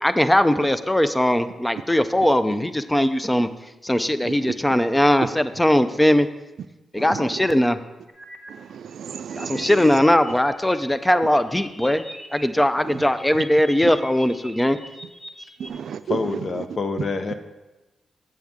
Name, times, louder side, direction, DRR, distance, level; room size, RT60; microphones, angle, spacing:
voice 1, 0.0-3.5 3.8-6.3 6.9-7.8 9.4-12.0 12.3-14.8, left 1 dB, 10° left, 11 dB, 0.5 m, -20 dB
voice 2, 4.2-4.5 7.0-7.6 8.5-10.0 12.8-13.0 15.6-16.4, right 8 dB, 75° right, 12 dB, 0.3 m, -33 dB
sound 1, 8.1-8.5 8.9-10.8 11.1-12.5 12.8-15.7, equal, 30° left, 1.6 m, -42 dB
voice 3, 16.0-17.3, left 3 dB, 50° left, 8 dB, 0.7 m, -26 dB
7.7 x 7.4 x 3.6 m, 1.1 s
cardioid pair, 75°, 0 cm